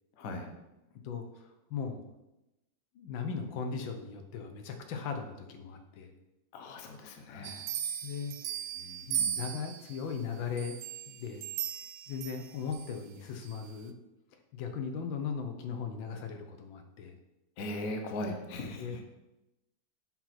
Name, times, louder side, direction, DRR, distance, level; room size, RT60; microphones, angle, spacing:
voice 1, 0.2-0.5 6.5-7.7 8.7-9.4 17.6-19.0, left 1 dB, 55° left, 4 dB, 1.2 m, -39 dB
voice 2, 1.0-2.0 2.9-6.1 7.3-7.5 8.0-8.4 9.1-10.8 11.1-11.4 12.1-13.9 14.5-17.2 18.8-19.0, left 6 dB, 85° left, 5 dB, 1.6 m, -38 dB
sound 1, 7.4-10.0 10.6-12.9 13.4-13.5, right 10 dB, 90° right, 1.4 m, -37 dB
7.7 x 4.7 x 4.3 m, 0.96 s
omnidirectional pair, 2.1 m